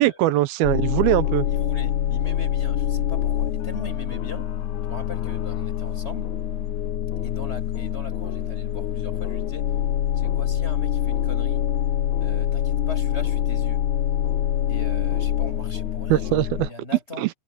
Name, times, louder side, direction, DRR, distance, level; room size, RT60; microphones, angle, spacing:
voice 1, 0.0-1.5 16.1-16.7 17.2-17.3, right 16 dB, 90° right, 2.8 m, -21 dB
sound 1, 0.6-16.7, left 10 dB, 70° left, 2.1 m, -25 dB
voice 2, 1.5-4.5 4.8-6.3 7.2-9.6 10.2-11.6 12.2-13.8 14.7-16.3 16.7-17.2, left 2 dB, 15° left, 6.8 m, -40 dB
omnidirectional pair, 4.2 m